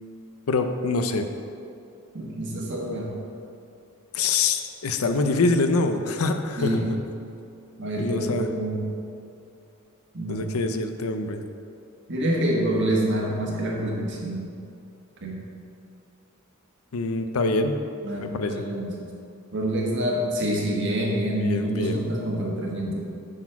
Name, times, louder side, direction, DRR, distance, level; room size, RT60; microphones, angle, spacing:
voice 1, 0.5-1.3 4.1-7.0 8.0-8.5 10.3-11.4 16.9-17.8 18.2-18.6 21.4-22.0, left 3 dB, 80° left, 8 dB, 0.5 m, -25 dB
voice 2, 2.1-3.1 6.6-6.9 7.8-8.8 10.1-10.4 12.1-14.5 15.2-15.4 18.0-18.9 19.5-23.0, right 1 dB, 55° right, -2 dB, 1.4 m, -26 dB
8.7 x 4.1 x 5.7 m, 2.6 s
head